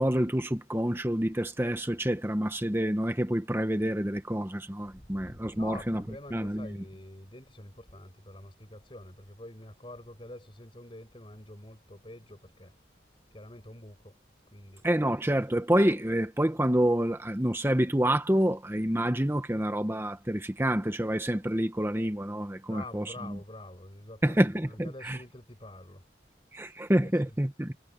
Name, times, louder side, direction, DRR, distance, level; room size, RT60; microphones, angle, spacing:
voice 1, 0.0-6.0 6.3-6.8 14.8-23.4 24.2-25.2 26.5-27.7, right 1 dB, 15° right, 1.0 m, -28 dB
voice 2, 5.0-12.7 13.3-14.2 14.5-14.8 22.7-26.0, left 1 dB, 30° left, 5.8 m, -47 dB
head